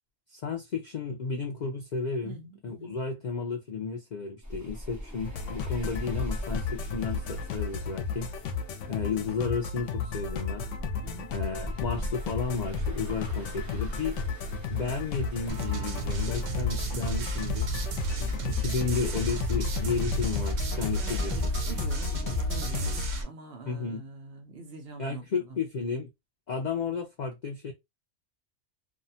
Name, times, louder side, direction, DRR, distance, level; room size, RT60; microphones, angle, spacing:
voice 1, 0.3-8.3 8.9-10.7 11.3-14.2 14.7-17.7 18.2-21.3 23.7-24.0 25.0-26.1 26.5-27.7, left 5 dB, 60° left, 0.4 m, -33 dB
voice 2, 2.2-3.0 8.9-9.1 11.0-11.3 21.0-25.6 26.9-27.0, right 3 dB, 60° right, 0.8 m, -44 dB
sound 1, 4.4-21.7, equal, 15° right, 0.7 m, -40 dB
sound 2, 5.3-23.1, left 5 dB, 80° left, 0.9 m, -34 dB
sound 3, 15.5-23.2, right 1 dB, 85° right, 1.0 m, -32 dB
2.7 x 2.2 x 2.6 m
omnidirectional pair, 1.3 m